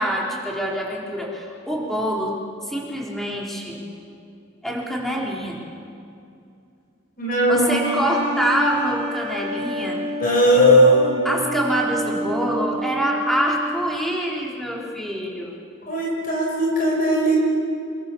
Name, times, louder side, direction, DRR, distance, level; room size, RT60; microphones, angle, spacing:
voice 1, 0.0-3.8 4.6-5.6 7.5-10.0 11.2-15.5, equal, ahead, -3 dB, 4.0 m, -25 dB
voice 2, 7.2-7.8 10.2-11.1 15.9-17.4, equal, 45° left, -1 dB, 5.1 m, -17 dB
sound 1, 7.8-14.1, right 1 dB, 30° right, 2.4 m, -29 dB
28.0 x 23.5 x 7.2 m, 2.5 s
head